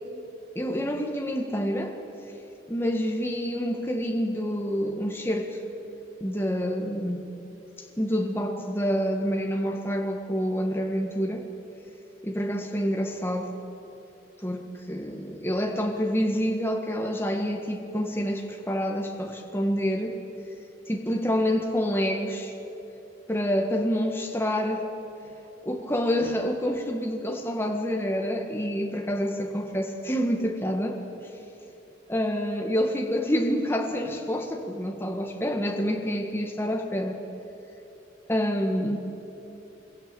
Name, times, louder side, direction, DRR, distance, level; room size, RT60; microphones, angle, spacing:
voice 1, 0.5-2.0 2.7-5.6 6.2-7.2 8.0-11.5 12.2-13.5 14.4-20.2 20.9-22.5 23.3-24.9 25.6-31.0 32.1-37.2 38.3-39.0, equal, 15° left, 2 dB, 1.6 m, -27 dB
25.0 x 23.0 x 9.0 m, 3.0 s
head